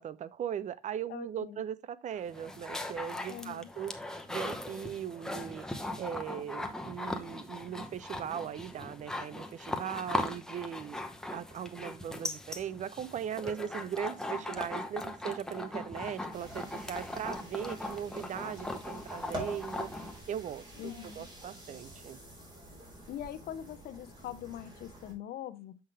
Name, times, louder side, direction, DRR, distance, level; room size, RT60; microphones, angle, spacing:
voice 1, 0.0-3.9 4.3-5.7 6.0-11.0 11.3-22.2, right 9 dB, 45° right, 0.5 m, -39 dB
voice 2, 1.1-1.6 3.3-3.7 20.8-21.3 23.1-25.8, left 11 dB, 65° left, 0.8 m, -42 dB
sound 1, 2.1-20.2, left 1 dB, 5° left, 0.9 m, -39 dB
sound 2, 16.3-25.1, right 1 dB, 25° right, 4.3 m, -47 dB
7.8 x 5.7 x 3.2 m
cardioid pair, 110°, 17 cm